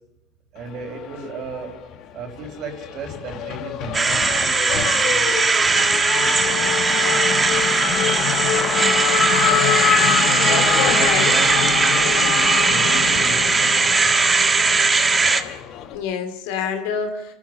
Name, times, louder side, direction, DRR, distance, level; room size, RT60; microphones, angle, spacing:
voice 1, 0.5-1.7 2.1-5.3 5.6-6.1 9.9-14.3, right 3 dB, 55° right, 5 dB, 4.9 m, -35 dB
Race car auto racing / Accelerating revving vroom, 0.9-2.0 2.3-16.0, left 9 dB, 55° left, 1.9 m, -25 dB
sound 1, 3.9-15.4, right 4 dB, 25° right, 1.5 m, -19 dB
voice 2, 10.4-11.4 15.9-17.3, left 6 dB, 75° left, 7 dB, 3.0 m, -27 dB
29.0 x 13.5 x 6.7 m, 0.98 s
supercardioid pair, 95°, 0 cm